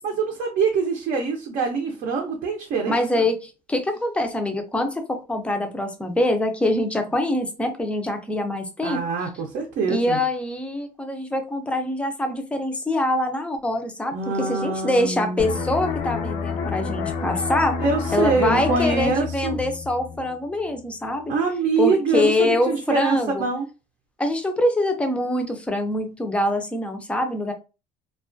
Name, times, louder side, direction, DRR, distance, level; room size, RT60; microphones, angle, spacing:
voice 1, 0.0-3.3 8.8-10.2 14.1-15.6 17.8-19.6 21.3-23.7, right 4 dB, 55° right, 1 dB, 0.6 m, -24 dB
voice 2, 2.9-9.0 9.9-17.8 18.1-21.3 21.8-23.4 24.2-27.5, left 1 dB, 10° left, 5 dB, 0.4 m, -24 dB
sound 1, 15.4-20.8 21.1-21.4, left 5 dB, 75° left, 0.5 m, -29 dB
2.3 x 2.2 x 2.5 m, 0.31 s
cardioid pair, 125°, 15 cm